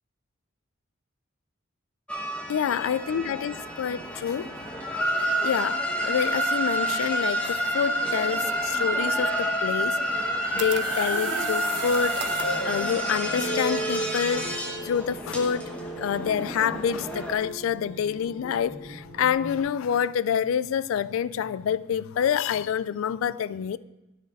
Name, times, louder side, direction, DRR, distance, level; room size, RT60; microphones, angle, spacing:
sound 1, 2.1-17.3, equal, 5° left, 1.0 m, -29 dB
voice 1, 2.5-4.5 5.4-10.2 10.5-12.2 12.6-14.4 14.8-23.8, left 8 dB, 75° left, 0.3 m, -27 dB
sound 2, 10.2-12.7, right 7 dB, 60° right, 0.5 m, -35 dB
sound 3, 11.7-19.6, right 1 dB, 40° left, 1.3 m, -36 dB
9.7 x 6.4 x 4.1 m
head